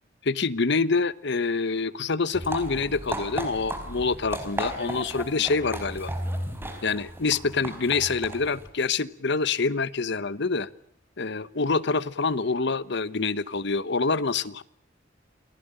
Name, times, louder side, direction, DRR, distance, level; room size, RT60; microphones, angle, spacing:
voice 1, 0.2-6.1 6.8-10.7 11.2-14.6, left 4 dB, 65° left, 16 dB, 1.1 m, -26 dB
sound 1, 2.3-8.7, right 1 dB, 10° right, 4.5 m, -35 dB
28.5 x 19.5 x 8.9 m, 0.63 s
head